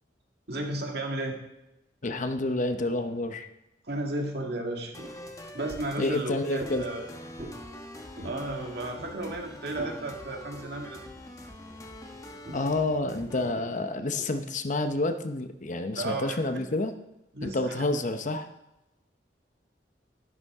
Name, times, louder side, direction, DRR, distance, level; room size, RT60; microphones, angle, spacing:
voice 1, 0.5-1.4 3.9-4.9 5.5-7.0 8.2-11.1 15.9-16.4 17.3-17.8, right 2 dB, 65° right, 2 dB, 1.7 m, -33 dB
voice 2, 2.0-3.5 6.0-6.8 12.5-16.9 17.4-18.5, left 2 dB, 45° left, 8 dB, 0.8 m, -29 dB
sound 1, 4.7-5.2 5.6-6.0 6.6-6.8 7.4-7.6 8.0-8.5 8.8-10.0 10.5-10.7 12.4-12.8 13.3-14.3 15.0-15.1, right 1 dB, 45° right, 1.4 m, -43 dB
sound 2, 4.9-13.5, left 1 dB, 20° left, 1.2 m, -45 dB
11.0 x 11.0 x 3.6 m, 0.90 s
head